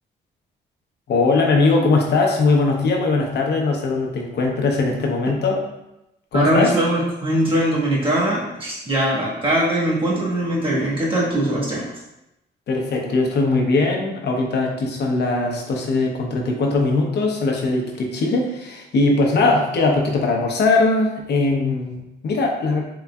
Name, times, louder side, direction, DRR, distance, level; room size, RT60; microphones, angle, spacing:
voice 1, 1.1-5.6 6.3-6.7 12.7-22.8, left 3 dB, 55° left, 1 dB, 0.8 m, -20 dB
voice 2, 6.3-11.9, right 1 dB, 25° right, -6 dB, 1.5 m, -21 dB
3.9 x 3.2 x 2.3 m, 0.90 s
cardioid pair, 90°, 20 cm